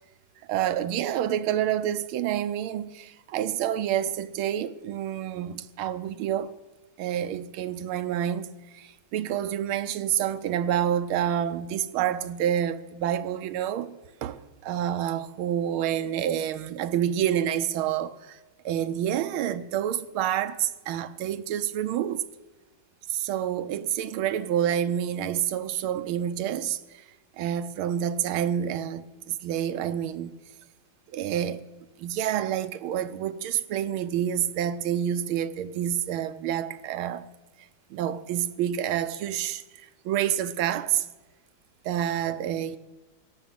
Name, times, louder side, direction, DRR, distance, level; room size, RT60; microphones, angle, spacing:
voice 1, 0.5-6.5 7.0-18.4 18.6-22.2 23.1-27.0 27.4-30.3 31.1-31.6 32.0-37.3 37.9-39.6 40.0-41.1 41.8-42.8, right 10 dB, 90° right, 1.6 m, -28 dB
16.5 x 6.9 x 9.4 m
omnidirectional pair, 2.2 m